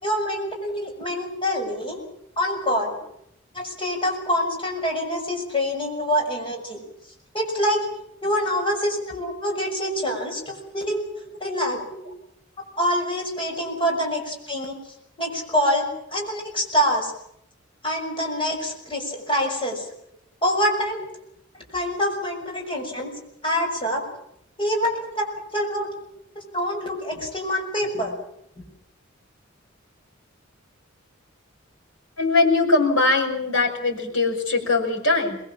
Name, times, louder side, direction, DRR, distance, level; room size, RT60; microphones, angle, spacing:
voice 1, 0.0-2.0 2.4-3.0 3.5-6.8 7.3-7.8 8.2-11.0 11.4-11.8 12.8-14.8 15.2-17.1 17.8-19.8 20.4-21.0 21.7-23.1 23.4-24.1 24.6-25.3 25.5-25.9 26.5-28.1, equal, 25° left, 1 dB, 6.3 m, -25 dB
voice 2, 32.2-35.4, left 3 dB, 75° left, 0 dB, 6.2 m, -22 dB
24.0 x 21.5 x 7.4 m, 0.74 s
head